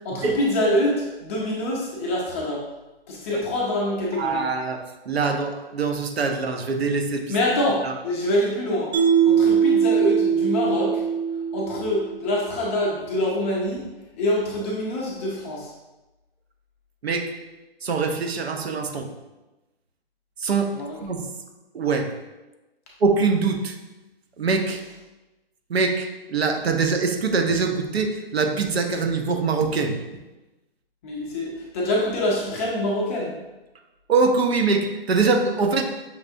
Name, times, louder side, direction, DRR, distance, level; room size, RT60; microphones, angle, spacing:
voice 1, 0.0-2.6 3.1-4.4 7.3-8.9 9.2-11.0 11.5-13.8 14.2-15.7 20.7-21.0 31.0-33.3, left 1 dB, 15° left, -4 dB, 0.4 m, -25 dB
voice 2, 4.2-7.2 7.8-7.9 17.0-17.3 17.8-19.1 20.4-20.7 21.0-21.3 21.7-22.1 23.0-23.8 24.4-24.8 25.7-29.9 34.1-35.8, right 4 dB, 85° right, 5 dB, 0.8 m, -23 dB
Mallet percussion, 8.9-12.2, right 7 dB, 40° right, 1.0 m, -21 dB
5.8 x 3.2 x 2.6 m, 1.1 s
hypercardioid pair, 145°, 31 cm